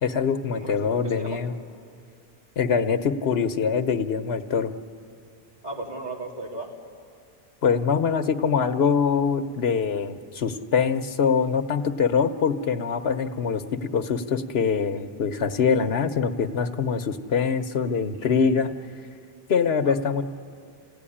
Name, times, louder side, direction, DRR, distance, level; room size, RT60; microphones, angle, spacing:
voice 1, 0.0-1.5 2.6-4.7 7.6-18.7 19.5-20.2, left 6 dB, 75° left, 9 dB, 1.2 m, -24 dB
voice 2, 0.6-1.4 5.6-6.7 19.8-20.0, right 2 dB, 40° right, -3 dB, 3.1 m, -35 dB
28.0 x 16.5 x 10.0 m, 2.4 s
omnidirectional pair, 1.1 m